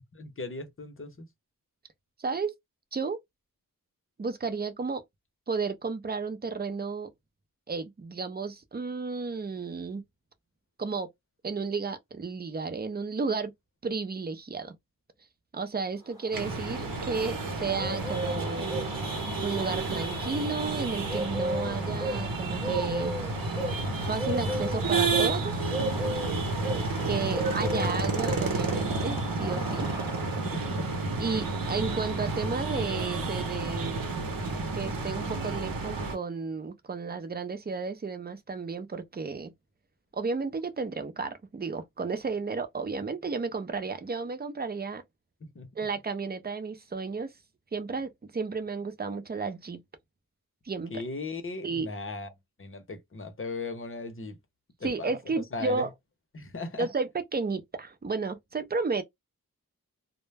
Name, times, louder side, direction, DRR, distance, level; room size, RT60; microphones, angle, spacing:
voice 1, 0.2-1.3 30.4-30.9 45.4-45.7 50.9-52.3 52.6-54.4 54.8-55.9 56.3-56.9, left 3 dB, 35° left, 0.7 m, -37 dB
voice 2, 2.2-2.5 2.9-3.2 4.2-5.0 5.5-7.1 7.7-10.0 10.8-11.1 11.4-13.5 13.8-14.7 15.5-19.0 19.4-23.1 24.0-25.8 27.0-29.9 31.2-34.0 34.7-39.5 40.1-45.0 45.8-47.3 47.7-49.8 50.6-50.9 51.6-51.9 54.8-55.9 56.8-59.0, right 4 dB, 25° right, 0.5 m, -33 dB
sound 1, 16.2-30.8, equal, 10° right, 0.8 m, -36 dB
sound 2, 16.3-36.1, right 3 dB, 70° right, 0.8 m, -31 dB
2.1 x 2.1 x 3.3 m
wide cardioid pair, 80°, 36 cm